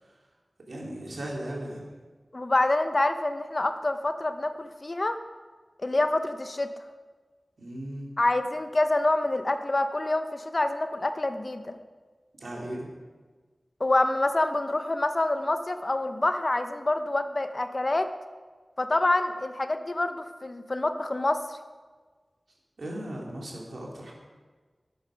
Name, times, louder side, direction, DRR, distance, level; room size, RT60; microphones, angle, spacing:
voice 1, 0.7-1.8 7.6-8.1 12.4-12.9 22.8-24.1, right 1 dB, 85° right, -2 dB, 2.9 m, -37 dB
voice 2, 2.3-5.2 5.8-6.7 8.2-11.7 13.8-18.1 18.8-21.6, left 2 dB, 45° left, 8 dB, 0.8 m, -26 dB
12.5 x 8.8 x 5.2 m, 1.4 s
wide cardioid pair, 65°, 0 cm